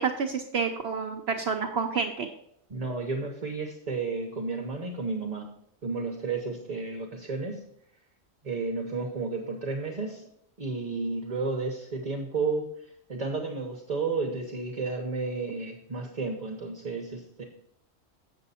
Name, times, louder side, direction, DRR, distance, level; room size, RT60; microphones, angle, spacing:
voice 1, 0.0-2.3, right 5 dB, 60° right, 4 dB, 0.8 m, -29 dB
voice 2, 2.7-5.5 5.8-7.6 8.4-10.2 10.6-12.7 13.1-17.4, right 3 dB, 35° right, 2 dB, 0.9 m, -32 dB
8.1 x 6.8 x 4.2 m, 0.70 s
omnidirectional pair, 1.4 m